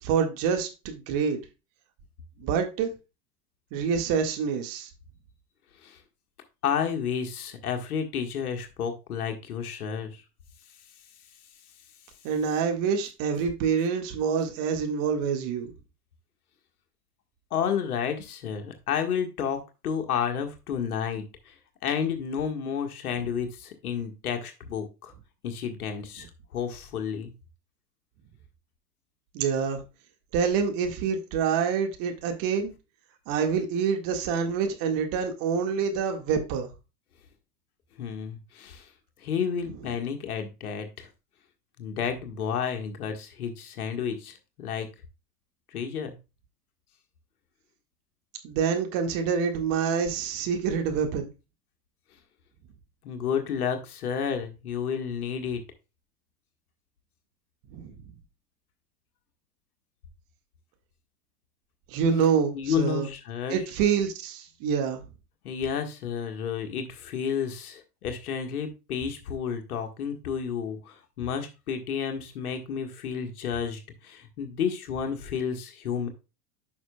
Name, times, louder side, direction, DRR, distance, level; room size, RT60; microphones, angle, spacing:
voice 1, 0.0-1.4 2.4-2.9 3.7-4.9 12.2-15.7 29.3-29.8 30.3-32.7 33.3-36.7 48.4-51.3 57.7-57.9 61.9-63.1 63.5-65.0, right 6 dB, 45° right, 1.9 m, -26 dB
voice 2, 6.6-10.2 17.5-25.1 25.4-26.3 26.5-27.3 38.0-38.9 39.2-41.1 41.8-44.9 45.7-46.1 53.0-55.6 62.5-63.6 65.4-76.1, left 7 dB, 70° left, 1.7 m, -31 dB
9.5 x 6.0 x 2.3 m
figure-of-eight pair, 90°, 46 cm